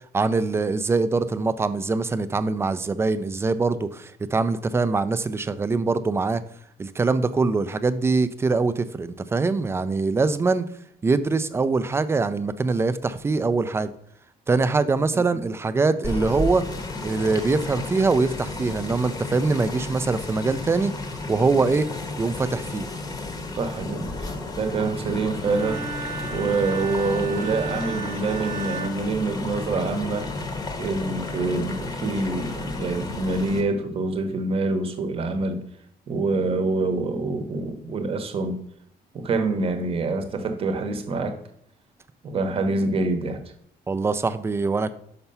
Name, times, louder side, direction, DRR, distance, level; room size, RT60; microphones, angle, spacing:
voice 1, 0.1-6.4 6.8-10.7 11.0-13.9 14.5-16.6 17.0-21.9 22.2-22.9 43.9-44.9, right 3 dB, 15° right, 13 dB, 0.3 m, -23 dB
sound 1, 16.0-33.6, left 2 dB, 20° left, 0.8 m, -33 dB
voice 2, 23.5-24.1 24.6-25.8 26.3-30.3 30.8-35.6 36.1-38.6 39.1-41.4 42.2-43.4, right 3 dB, 35° right, 8 dB, 0.9 m, -26 dB
Bowed string instrument, 25.4-29.9, right 5 dB, 75° right, 1.0 m, -35 dB
5.8 x 5.5 x 5.4 m, 0.71 s
cardioid pair, 175°, 16 cm